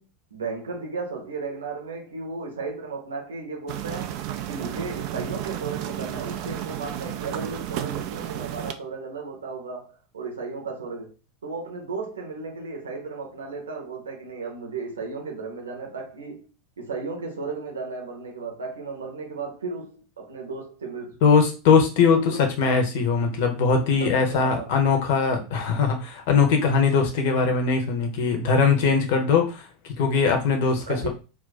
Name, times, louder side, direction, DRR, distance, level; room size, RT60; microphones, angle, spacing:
voice 1, 0.0-4.2 4.5-11.1 11.4-16.5 16.8-21.3 22.3-22.4 24.0-24.7 30.9-31.1, right 4 dB, 70° right, 0.7 m, -35 dB
sound 1, 3.7-8.7, right 11 dB, 50° right, 0.3 m, -32 dB
voice 2, 21.2-29.6 30.0-31.1, left 5 dB, 55° left, 0.7 m, -21 dB
2.5 x 2.2 x 3.9 m
figure-of-eight pair, 80°, 0 cm